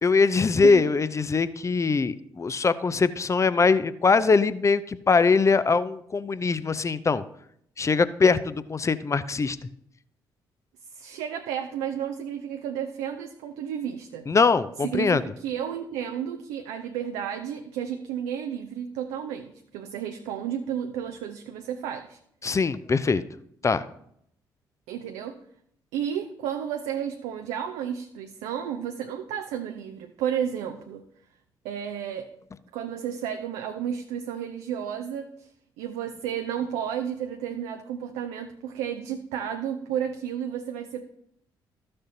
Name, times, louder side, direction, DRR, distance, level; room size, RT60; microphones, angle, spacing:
voice 1, 0.0-7.2 7.8-9.6 14.3-15.2 22.4-23.2 23.6-23.8, left 4 dB, 25° left, 15 dB, 0.6 m, -22 dB
voice 2, 10.9-14.3 14.8-22.2 24.9-25.4 25.9-31.0 31.6-32.3 32.7-35.5 35.8-41.1, right 9 dB, 65° right, 6 dB, 0.6 m, -32 dB
14.0 x 6.6 x 2.8 m, 0.71 s
figure-of-eight pair, 45°, 12 cm